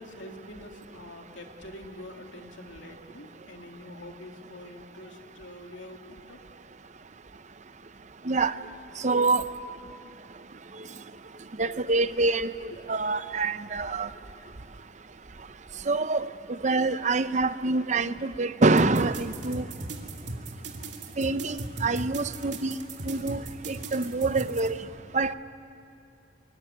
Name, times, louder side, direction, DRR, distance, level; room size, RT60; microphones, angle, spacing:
voice 1, 0.0-6.4, left 1 dB, 80° left, 2 dB, 2.8 m, -45 dB
voice 2, 9.0-9.4 11.6-12.5 12.9-14.1 15.9-16.3 16.6-19.6 21.2-22.8 23.1-23.4 23.7-24.8 25.1-25.3, right 3 dB, 40° right, 12 dB, 0.7 m, -25 dB
sound 1, 18.8-24.7, right 2 dB, 65° right, 2.8 m, -37 dB
24.0 x 23.0 x 9.9 m, 2.5 s
head